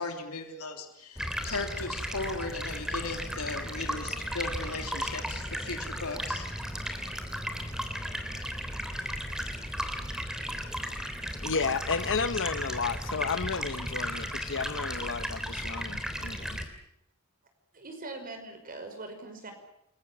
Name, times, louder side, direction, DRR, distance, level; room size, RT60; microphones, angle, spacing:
voice 1, 0.0-6.5, left 3 dB, 75° left, 4 dB, 3.4 m, -37 dB
Stream, 1.2-16.6, equal, 5° right, 3.3 m, -35 dB
voice 2, 11.4-16.6, left 5 dB, 60° left, 12 dB, 1.1 m, -32 dB
voice 3, 17.7-19.5, right 2 dB, 40° right, 5 dB, 5.6 m, -42 dB
29.0 x 22.5 x 7.5 m, 0.76 s
head